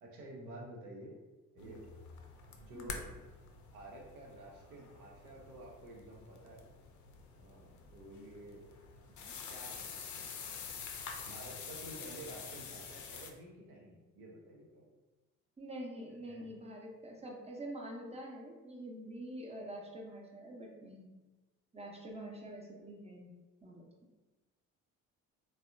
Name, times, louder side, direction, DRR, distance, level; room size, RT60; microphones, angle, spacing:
voice 1, 0.0-1.1 1.5-1.8 2.6-3.1 3.7-6.7 7.4-8.6 9.5-10.5 11.2-14.9 16.3-16.4, right 1 dB, 80° right, -2 dB, 0.7 m, -51 dB
sound 1, 1.6-13.3, left 5 dB, 45° left, 0.5 m, -47 dB
voice 2, 15.6-21.1 21.7-23.3 23.6-23.9, right 1 dB, 15° right, 0 dB, 0.7 m, -46 dB
3.4 x 2.1 x 2.5 m, 1.2 s
figure-of-eight pair, 45°, 43 cm